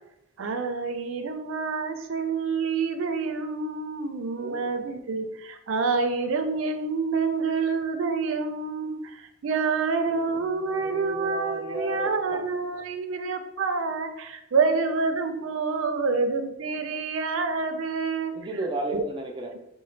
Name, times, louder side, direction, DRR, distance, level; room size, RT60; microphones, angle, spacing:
voice 1, 0.4-18.3 18.9-19.0 19.5-19.6, right 4 dB, 90° right, 7 dB, 0.4 m, -27 dB
voice 2, 10.1-12.4 18.3-19.5, right 1 dB, 25° right, 1 dB, 0.5 m, -34 dB
3.9 x 2.1 x 3.2 m, 0.85 s
head